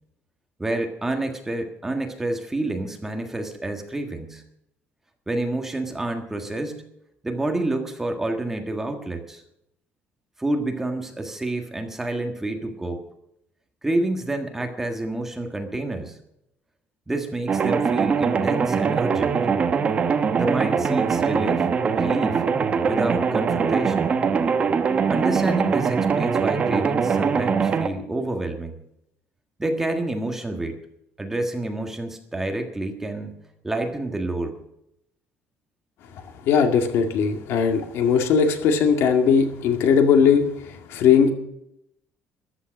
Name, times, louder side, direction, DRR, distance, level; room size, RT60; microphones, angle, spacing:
voice 1, 0.6-4.4 5.3-6.8 7.2-9.4 10.4-13.0 13.8-16.2 17.1-19.4 20.3-21.7 21.9-22.4 22.9-24.1 25.1-28.8 29.6-30.8 31.2-33.4 33.6-34.6, right 2 dB, 10° right, 4 dB, 1.6 m, -28 dB
sound 1, 17.5-27.9, right 6 dB, 30° right, 1.1 m, -22 dB
voice 2, 36.5-41.3, left 6 dB, 60° left, 6 dB, 2.1 m, -19 dB
14.0 x 11.5 x 6.3 m, 0.78 s
cardioid pair, 175°, 5 cm